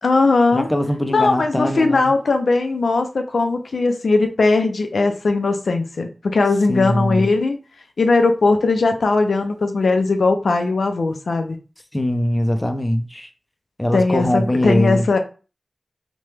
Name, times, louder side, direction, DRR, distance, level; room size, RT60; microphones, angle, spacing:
voice 1, 0.0-0.7 1.1-7.6 8.0-11.6 13.9-15.2, left 3 dB, 85° left, 0.4 m, -19 dB
voice 2, 0.5-2.1 6.7-7.3 11.9-13.3 13.8-15.1, left 1 dB, 15° left, 0.4 m, -21 dB
3.0 x 2.1 x 3.2 m
cardioid pair, 50°, 0 cm